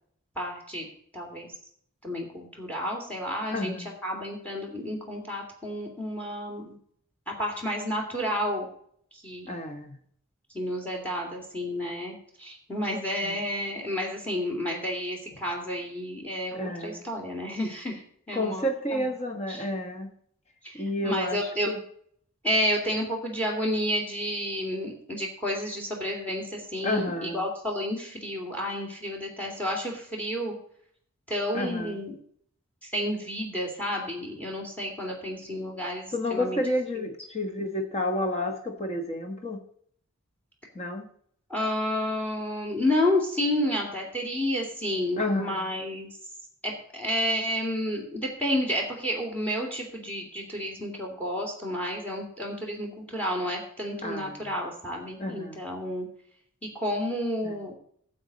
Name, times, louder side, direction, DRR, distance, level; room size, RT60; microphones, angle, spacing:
voice 1, 0.4-0.9 1.1-1.5 2.0-3.7 4.0-6.8 7.3-8.7 9.2-9.5 10.5-19.1 19.5-19.6 20.6-20.7 21.0-21.7 22.4-30.5 31.3-32.1 32.9-36.6 36.9-37.1 41.5-46.1 46.6-56.1 56.6-57.7, left 1 dB, 5° left, 1 dB, 2.7 m, -30 dB
voice 2, 3.5-3.9 9.5-10.0 13.2-13.4 16.5-17.0 18.3-20.1 20.7-21.8 26.8-27.4 31.5-31.9 36.1-39.6 40.7-41.1 45.2-45.7 54.0-54.4 55.2-55.6 57.4-57.6, left 1 dB, 30° left, 5 dB, 1.3 m, -30 dB
12.0 x 7.8 x 4.1 m, 0.62 s
head